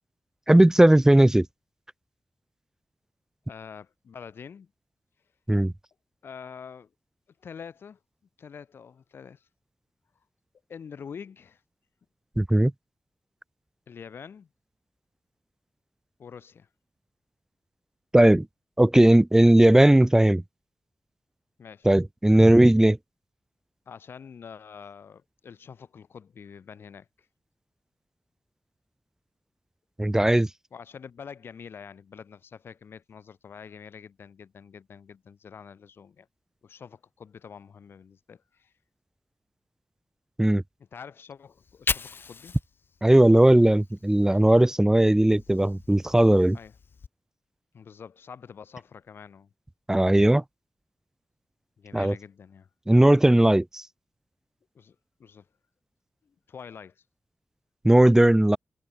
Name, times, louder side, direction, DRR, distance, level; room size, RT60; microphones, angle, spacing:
voice 1, 0.5-1.5 5.5-5.7 12.4-12.7 18.1-18.5 18.8-20.4 21.9-23.0 30.0-30.5 40.4-40.6 43.0-46.6 49.9-50.4 51.9-52.1 52.9-53.8 57.8-58.6, right 1 dB, 15° right, 0.6 m, -18 dB
voice 2, 3.5-4.7 6.2-6.9 7.4-8.0 8.4-9.5 10.7-11.6 13.9-14.5 16.2-16.7 21.6-21.9 23.9-27.1 30.7-36.3 36.6-38.7 40.8-42.6 46.5-46.7 47.7-49.5 51.8-52.7 54.8-55.5 56.2-57.0, left 6 dB, 85° left, 3.4 m, -45 dB
Fire, 41.5-44.6 45.0-47.1, left 5 dB, 70° left, 1.7 m, -38 dB
cardioid pair, 55°, 4 cm